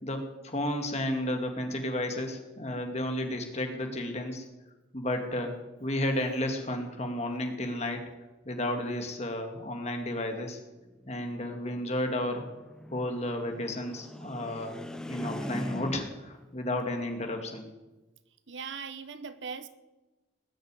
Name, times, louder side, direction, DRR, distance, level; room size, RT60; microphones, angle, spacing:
voice 1, 0.0-4.4 4.9-8.0 8.5-10.6 11.1-12.5 12.9-14.8 15.1-17.7, left 1 dB, 35° left, 4 dB, 2.2 m, -32 dB
sound 1, 10.8-16.3, equal, 5° left, 0.8 m, -41 dB
voice 2, 18.5-19.7, right 5 dB, 65° right, 12 dB, 1.0 m, -39 dB
19.0 x 6.6 x 9.9 m, 1.1 s
head